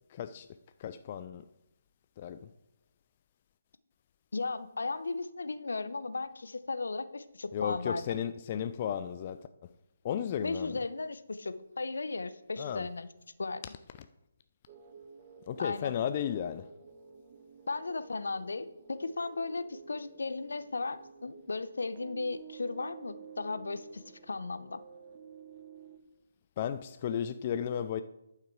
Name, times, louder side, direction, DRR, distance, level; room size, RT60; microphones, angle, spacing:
voice 1, 0.1-0.5 0.8-1.5 2.2-2.4 7.5-9.5 10.0-10.8 12.6-12.9 15.5-16.7 26.6-28.0, left 9 dB, 35° left, 0.4 m, -34 dB
voice 2, 4.3-8.2 10.4-13.1 13.4-13.6 15.6-15.9 17.7-24.8, left 3 dB, 75° left, 0.7 m, -36 dB
sound 1, 14.7-26.0, right 6 dB, 35° right, 0.9 m, -52 dB
11.5 x 5.7 x 4.6 m
figure-of-eight pair, 150°, 0 cm